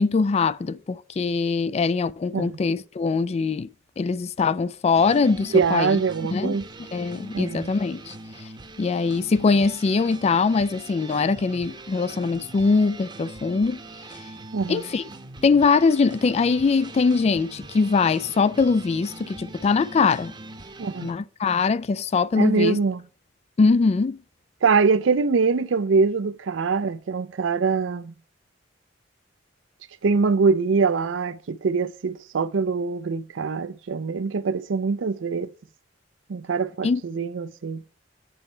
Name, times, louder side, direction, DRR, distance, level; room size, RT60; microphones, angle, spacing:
voice 1, 0.0-3.7 4.0-6.0 6.3-6.6 6.9-8.1 8.8-13.8 14.7-15.0 15.4-20.3 21.0-22.8 23.6-24.2 36.8-37.0, left 4 dB, 35° left, 0.3 m, -22 dB
sound 1, 4.9-21.1, right 2 dB, 25° right, 0.9 m, -42 dB
voice 2, 5.5-6.6 7.3-7.7 14.5-14.8 20.8-21.1 22.3-23.0 24.6-28.1 30.0-35.5 36.3-37.8, right 4 dB, 85° right, 0.5 m, -23 dB
7.8 x 4.4 x 5.4 m
head